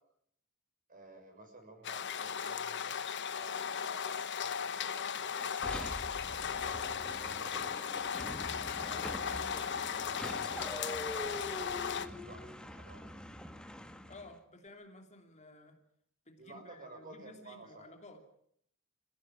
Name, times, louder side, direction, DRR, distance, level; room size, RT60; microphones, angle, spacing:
voice 1, 0.9-5.6 6.4-7.7 8.1-11.4 12.1-13.2 16.4-17.8, right 2 dB, 40° right, 4 dB, 6.7 m, -53 dB
sound 1, 1.8-12.1, left 7 dB, 55° left, 1.2 m, -37 dB
sound 2, 5.6-14.4, left 1 dB, 5° left, 1.5 m, -44 dB
voice 2, 14.1-15.8 16.3-18.2, left 2 dB, 35° left, 5 dB, 2.9 m, -54 dB
27.0 x 16.0 x 8.7 m, 0.69 s
head